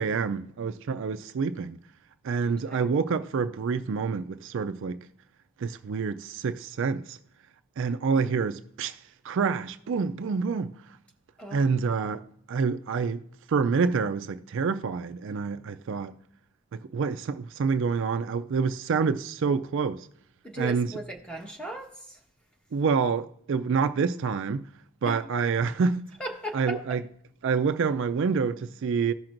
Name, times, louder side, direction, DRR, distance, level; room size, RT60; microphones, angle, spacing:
voice 1, 0.0-1.8 2.2-5.0 5.6-7.2 7.8-10.7 11.5-12.2 12.5-16.1 16.7-20.1 20.6-20.9 22.7-24.6 25.0-26.1 26.5-27.0 27.4-29.1, right 5 dB, 60° right, 0.4 m, -27 dB
voice 2, 2.4-2.9 8.1-8.3 11.4-11.6 20.4-22.2 25.0-25.2 26.2-26.8, right 1 dB, 5° left, 1.2 m, -37 dB
15.5 x 5.9 x 2.5 m
head